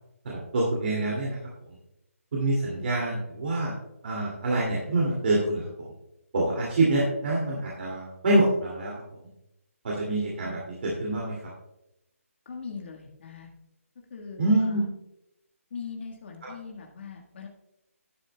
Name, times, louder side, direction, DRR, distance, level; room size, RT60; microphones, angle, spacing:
voice 1, 0.2-1.4 2.3-3.7 4.0-5.9 6.3-8.9 9.8-11.4 14.4-14.8, right 2 dB, 45° right, -4 dB, 2.4 m, -26 dB
voice 2, 12.4-13.5 14.1-14.9 15.7-17.5, left 5 dB, 45° left, 1 dB, 1.5 m, -40 dB
11.5 x 10.5 x 2.2 m, 0.87 s
figure-of-eight pair, 160°, 8 cm